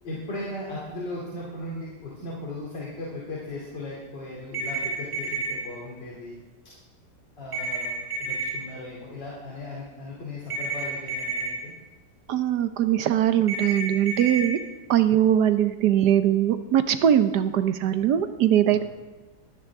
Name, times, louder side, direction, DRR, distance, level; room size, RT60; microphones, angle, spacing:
voice 1, 0.0-6.4 7.4-11.7 18.7-18.8, left 2 dB, 85° left, -5 dB, 3.5 m, -37 dB
sound 1, 4.5-5.5 7.5-8.5 10.5-11.5 13.5-14.5, right 3 dB, 45° right, 3.3 m, -30 dB
voice 2, 12.3-14.6 14.9-18.8, right 10 dB, 70° right, 10 dB, 1.3 m, -21 dB
23.0 x 16.5 x 3.6 m, 1.2 s
omnidirectional pair, 1.9 m